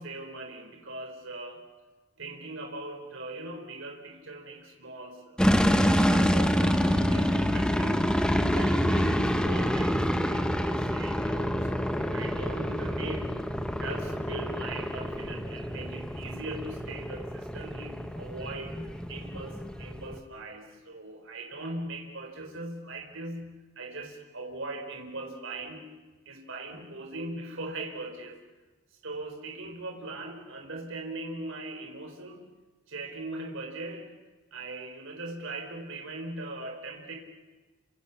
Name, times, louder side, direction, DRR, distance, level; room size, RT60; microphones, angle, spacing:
voice 1, 0.0-1.6 2.2-8.1 8.5-13.3 13.8-25.9 26.2-28.4 29.0-32.4 32.9-34.1 34.5-37.1, right 2 dB, 60° right, 2 dB, 4.4 m, -40 dB
sound 1, 5.4-20.2, equal, 5° left, 1.2 m, -27 dB
27.5 x 26.5 x 7.1 m, 1.3 s
head